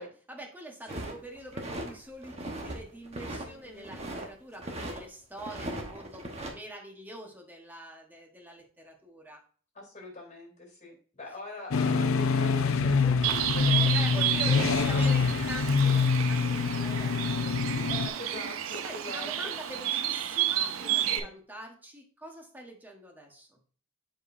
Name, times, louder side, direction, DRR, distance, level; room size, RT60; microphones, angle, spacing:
voice 1, 0.0-9.4 13.9-18.0 18.8-23.6, right 1 dB, 10° right, 1 dB, 1.2 m, -45 dB
sound 1, 0.9-1.9 2.2-2.8 3.1-4.3 4.6-5.0 5.4-6.5, right 1 dB, 30° right, 1.1 m, -38 dB
voice 2, 3.4-3.9 9.7-13.9 14.2-15.5 17.9-19.5 20.9-21.3, left 2 dB, 35° left, 0 dB, 2.8 m, -43 dB
sound 2, 11.7-18.1, left 5 dB, 75° left, 0.5 m, -25 dB
Bird, 13.2-21.2, right 11 dB, 80° right, 0.5 m, -31 dB
7.5 x 5.1 x 2.6 m, 0.42 s
head